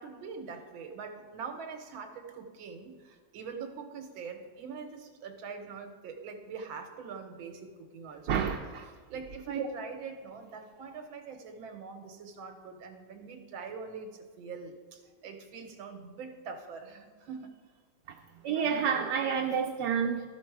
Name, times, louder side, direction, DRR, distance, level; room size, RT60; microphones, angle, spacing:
voice 1, 0.0-8.5 9.1-17.5, right 5 dB, 90° right, 1.7 m, -43 dB
voice 2, 8.3-8.9 9.5-9.6 18.4-20.2, right 7 dB, 70° right, 1.1 m, -29 dB
12.5 x 5.2 x 4.6 m
omnidirectional pair, 2.1 m